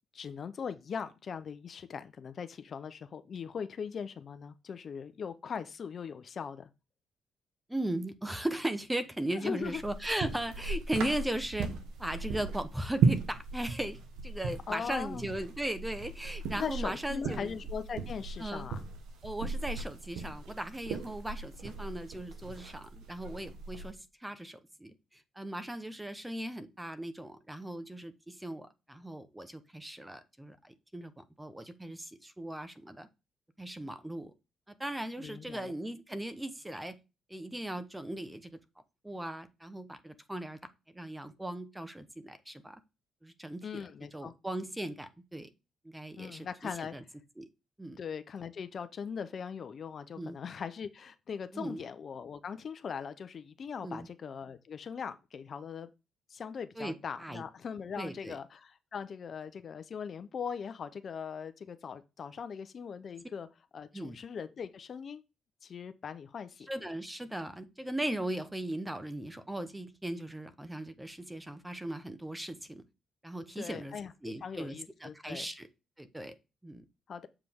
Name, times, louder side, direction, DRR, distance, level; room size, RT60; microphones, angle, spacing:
voice 1, 0.1-6.7 9.4-9.8 14.7-15.3 16.5-18.8 35.2-35.7 43.6-44.3 46.2-47.0 48.0-55.9 56.3-63.5 63.7-65.2 65.6-66.7 73.6-75.5 77.1-77.3, left 6 dB, 50° left, 0.6 m, -40 dB
voice 2, 7.7-11.7 12.0-17.6 18.4-18.7 19.2-33.1 33.6-34.3 34.8-37.0 37.3-38.6 39.0-40.6 40.9-42.8 43.2-43.8 44.1-45.5 45.8-47.0 47.4-47.5 47.8-48.0 50.2-50.4 51.5-51.8 53.8-54.1 56.8-57.4 58.0-58.4 63.9-64.2 66.7-72.8 73.2-74.0 74.2-75.7 76.0-76.3 76.6-76.8, right 1 dB, 10° right, 0.9 m, -38 dB
sound 1, 9.6-23.9, right 4 dB, 80° right, 1.2 m, -36 dB
7.6 x 4.9 x 3.6 m
cardioid pair, 90°, 0 cm